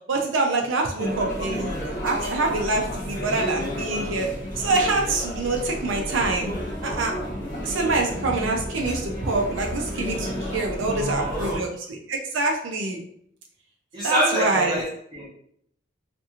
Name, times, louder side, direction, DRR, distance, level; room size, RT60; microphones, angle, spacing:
voice 1, 0.1-4.3 4.6-6.5 6.8-7.1 7.6-13.0 14.0-14.8, right 3 dB, 75° right, 1 dB, 0.5 m, -25 dB
sound 1, 1.0-11.6, equal, 45° left, 0.6 m, -31 dB
voice 2, 10.6-11.6 13.9-15.3, right 1 dB, 20° right, -9 dB, 0.8 m, -27 dB
2.7 x 2.6 x 2.4 m, 0.67 s
head